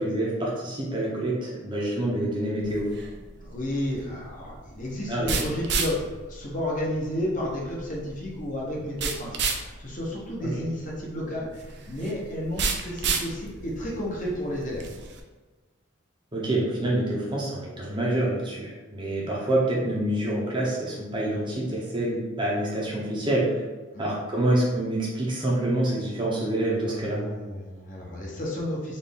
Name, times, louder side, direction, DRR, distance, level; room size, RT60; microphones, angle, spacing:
voice 1, 0.0-2.8 5.1-5.3 10.4-10.7 16.3-23.6 24.0-27.2, right 1 dB, 20° right, -5 dB, 0.7 m, -27 dB
sound 1, 2.6-15.2, right 4 dB, 55° right, 0.4 m, -33 dB
voice 2, 3.4-14.9 23.9-24.1 26.8-29.0, left 1 dB, 40° left, -3 dB, 0.8 m, -32 dB
4.1 x 2.6 x 3.5 m, 1.3 s
head